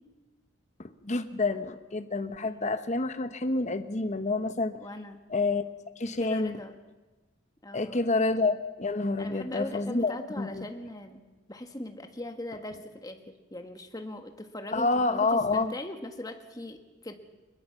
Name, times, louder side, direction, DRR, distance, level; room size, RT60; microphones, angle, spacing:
voice 1, 0.8-4.8 5.3-5.6 6.0-6.6 7.7-10.6 14.7-15.7, left 3 dB, 35° left, 9 dB, 0.9 m, -28 dB
voice 2, 2.4-2.8 4.8-5.2 6.2-6.8 7.6-8.1 9.2-11.2 11.5-17.1, left 1 dB, 20° left, 6 dB, 1.6 m, -40 dB
22.0 x 21.0 x 7.2 m, 1.2 s
head